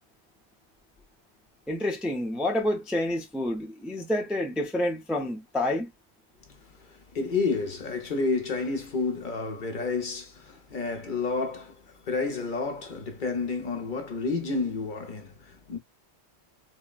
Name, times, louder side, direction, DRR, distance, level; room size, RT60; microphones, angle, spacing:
voice 1, 1.7-5.9, left 1 dB, ahead, 0.4 m, -28 dB
voice 2, 6.4-15.8, left 4 dB, 55° left, 0.8 m, -30 dB
3.8 x 2.1 x 2.3 m
omnidirectional pair, 1.1 m